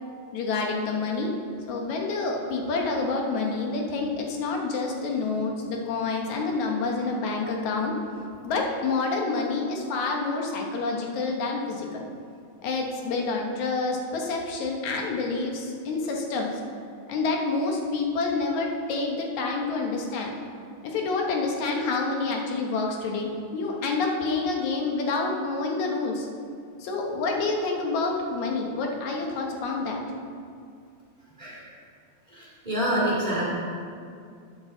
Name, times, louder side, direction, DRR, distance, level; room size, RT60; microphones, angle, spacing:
voice 1, 0.3-1.3 1.7-7.9 8.4-12.0 12.6-16.6 17.1-20.3 20.8-26.3 26.8-30.0, left 3 dB, 70° left, 1 dB, 2.5 m, -28 dB
voice 2, 32.3-33.5, right 1 dB, 15° right, -8 dB, 2.7 m, -27 dB
12.0 x 8.7 x 3.9 m, 2.3 s
omnidirectional pair, 3.6 m